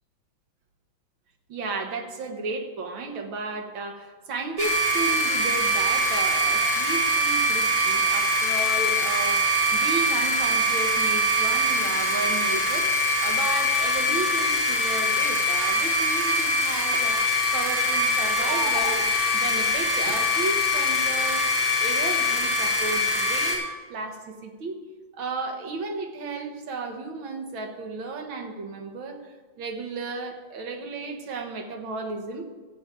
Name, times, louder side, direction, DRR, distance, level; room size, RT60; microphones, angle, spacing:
voice 1, 1.5-21.5 21.8-24.8 25.1-32.5, right 3 dB, 70° right, 4 dB, 2.0 m, -33 dB
sound 1, 4.6-23.6, equal, 40° right, 4.5 m, -23 dB
13.5 x 5.2 x 8.9 m, 1.3 s
omnidirectional pair, 2.3 m